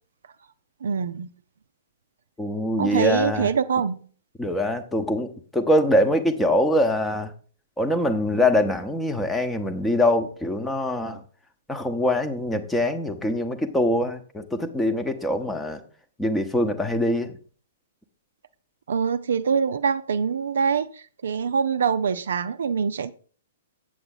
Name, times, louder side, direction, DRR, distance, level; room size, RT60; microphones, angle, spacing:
voice 1, 0.8-1.3 2.8-4.0 18.9-23.1, right 6 dB, 60° right, 0.4 m, -24 dB
voice 2, 2.4-3.5 4.4-7.3 7.8-11.2 11.7-15.8 16.2-17.4, left 1 dB, 5° left, 0.9 m, -23 dB
7.9 x 7.6 x 3.9 m
figure-of-eight pair, 110°, 0 cm